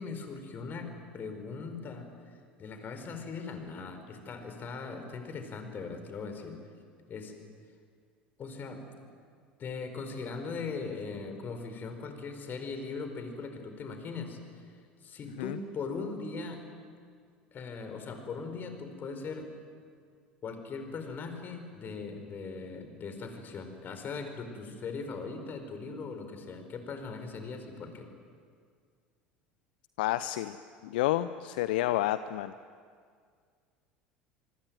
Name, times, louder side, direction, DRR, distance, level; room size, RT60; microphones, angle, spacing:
voice 1, 0.0-6.6 7.1-7.3 8.4-8.8 9.6-14.6 15.0-16.6 17.5-19.5 20.4-28.1, left 4 dB, 35° left, 7 dB, 4.9 m, -40 dB
voice 2, 30.0-30.6 30.8-32.5, left 14 dB, 65° left, 13 dB, 0.7 m, -29 dB
25.5 x 25.0 x 9.2 m, 2.1 s
figure-of-eight pair, 70°, 5 cm